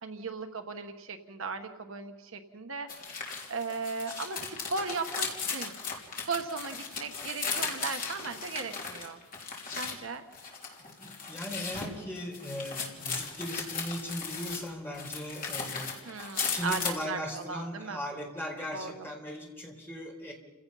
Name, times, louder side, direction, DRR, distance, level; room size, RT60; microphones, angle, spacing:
voice 1, 0.0-2.9 3.5-5.8 6.3-9.2 9.7-10.2 16.0-18.0 18.7-19.1, right 4 dB, 60° right, 7 dB, 1.2 m, -37 dB
sound 1, 2.9-10.0 10.3-14.7 14.9-17.0, left 5 dB, 40° left, 3.3 m, -36 dB
voice 2, 10.8-15.9 16.4-20.3, equal, 10° left, -1 dB, 4.2 m, -38 dB
29.5 x 16.5 x 5.5 m, 1.2 s
head